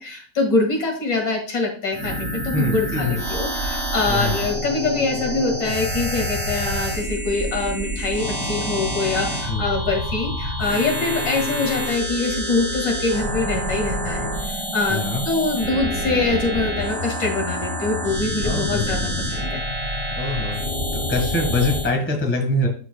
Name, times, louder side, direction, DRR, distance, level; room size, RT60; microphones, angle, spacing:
voice 1, 0.0-19.6, left 3 dB, 75° left, 1 dB, 2.5 m, -24 dB
sound 1, 1.9-21.9, equal, 15° right, 1.8 m, -27 dB
voice 2, 2.5-3.2 4.1-4.4 9.5-9.7 14.9-15.2 18.4-19.1 20.1-20.6 21.1-22.7, left 2 dB, 10° left, 2 dB, 1.1 m, -24 dB
12.0 x 4.5 x 2.2 m, 0.43 s
omnidirectional pair, 1.9 m